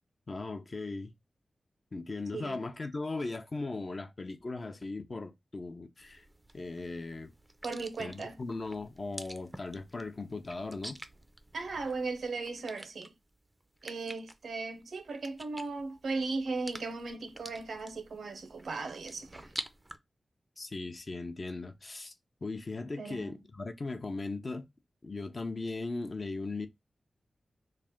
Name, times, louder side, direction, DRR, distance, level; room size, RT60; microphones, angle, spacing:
voice 1, 0.3-1.1 1.9-6.2 6.5-7.3 8.0-11.0 20.6-22.1 22.4-24.7 25.0-26.7, left 3 dB, 45° left, 0.6 m, -38 dB
sound 1, 6.0-20.0, right 1 dB, 15° right, 0.5 m, -49 dB
voice 2, 7.6-8.4 11.5-13.1 13.8-19.5 23.0-23.4, right 3 dB, 85° right, 0.8 m, -37 dB
3.2 x 2.5 x 3.5 m
wide cardioid pair, 90°, 0 cm